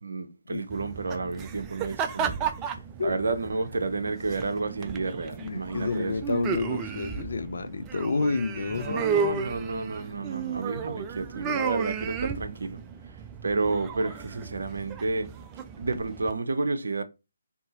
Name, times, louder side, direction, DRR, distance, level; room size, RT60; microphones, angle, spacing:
voice 1, 0.0-2.5 3.0-6.1 8.8-12.8 13.4-15.3 15.8-17.0, right 3 dB, 65° right, 0.6 m, -30 dB
sound 1, 0.7-16.3, right 6 dB, 20° right, 0.3 m, -34 dB
voice 2, 5.4-9.1, left 4 dB, 65° left, 0.5 m, -29 dB
2.7 x 2.6 x 3.7 m
figure-of-eight pair, 145°, 0 cm